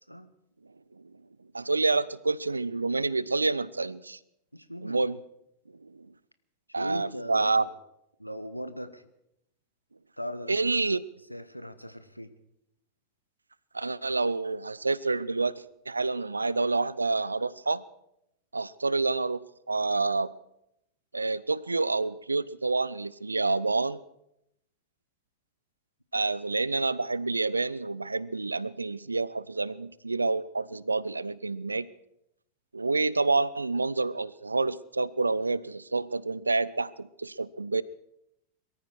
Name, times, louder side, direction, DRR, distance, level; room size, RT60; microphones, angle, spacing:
voice 1, 1.5-4.2 4.8-5.2 5.8-6.1 6.7-7.6 10.5-11.0 13.7-17.8 18.5-20.3 21.1-24.0 26.1-31.9 32.7-37.8, right 3 dB, 80° right, 21 dB, 0.5 m, -28 dB
voice 2, 4.5-5.0 6.7-7.7 8.2-9.1 10.2-10.6 11.3-12.3, equal, 90° left, 11 dB, 1.0 m, -39 dB
22.5 x 14.0 x 4.6 m, 0.80 s
figure-of-eight pair, 90°, 0 cm